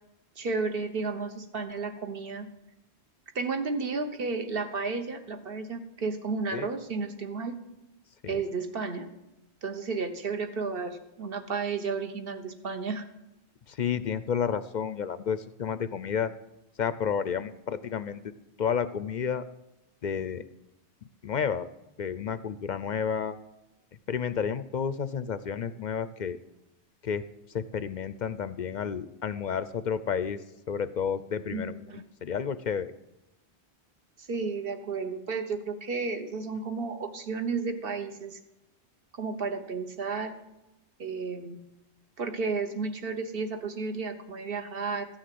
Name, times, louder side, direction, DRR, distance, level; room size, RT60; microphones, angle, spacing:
voice 1, 0.4-2.5 3.3-7.5 8.3-9.1 9.6-13.0 31.5-32.0 34.3-38.4 39.2-40.4 41.0-41.6 42.2-45.1, right 4 dB, 55° right, 7 dB, 1.3 m, -32 dB
voice 2, 13.7-16.3 16.8-18.2 18.6-19.4 20.0-20.4 21.2-21.7 22.0-23.4 24.1-26.4 27.0-27.2 27.5-30.4 30.7-32.9, left 7 dB, 55° left, 13 dB, 0.5 m, -31 dB
14.5 x 6.5 x 7.6 m, 0.94 s
omnidirectional pair, 1.1 m